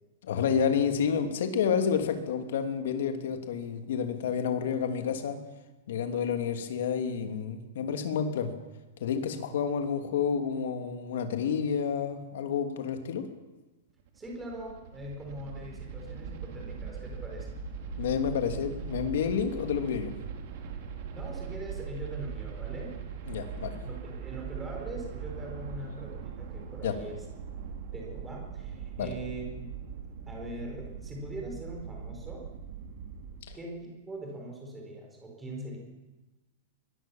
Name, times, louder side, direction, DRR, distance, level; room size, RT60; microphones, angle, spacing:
voice 1, 0.2-5.4 5.9-8.5 9.0-13.3 18.0-20.1 23.3-23.8 26.8-26.9 29.0-29.1 33.5-33.6, left 7 dB, 60° left, 6 dB, 2.9 m, -29 dB
sound 1, 14.0-33.4, right 6 dB, 40° right, 3.6 m, -40 dB
voice 2, 14.1-17.6 21.1-23.0 23.8-27.2 27.9-29.7 30.3-32.4 33.5-35.8, right 1 dB, 10° right, 0 dB, 4.9 m, -41 dB
23.5 x 20.5 x 7.3 m, 1.1 s
supercardioid pair, 180°, 0 cm